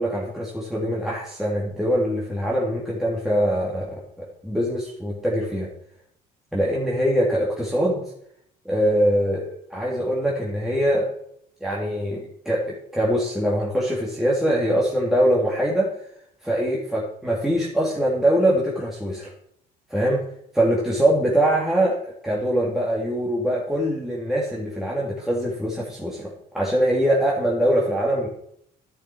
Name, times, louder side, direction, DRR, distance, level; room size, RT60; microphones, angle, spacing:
voice 1, 0.0-5.7 6.5-8.1 8.6-11.0 11.6-12.6 12.9-15.9 16.4-19.3 19.9-20.2 20.5-28.3, equal, ahead, -5 dB, 3.0 m, -23 dB
11.0 x 10.5 x 4.7 m, 0.70 s
cardioid pair, 110°, 17 cm